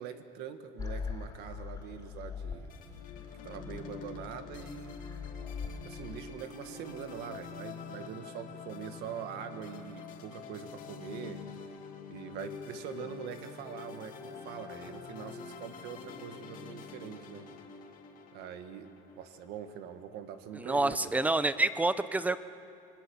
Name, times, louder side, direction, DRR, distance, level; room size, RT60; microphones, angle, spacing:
voice 1, 0.0-2.7 3.4-5.0 5.8-11.4 12.1-17.5 18.3-21.1, right 8 dB, 75° right, 9 dB, 1.7 m, -43 dB
sound 1, 0.8-6.2, left 5 dB, 20° left, 4.4 m, -42 dB
sound 2, 2.7-20.1, left 6 dB, 55° left, 2.4 m, -46 dB
voice 2, 20.5-22.4, right 2 dB, 10° right, 14 dB, 0.7 m, -28 dB
27.0 x 21.0 x 7.1 m, 2.5 s
cardioid pair, 140°, 17 cm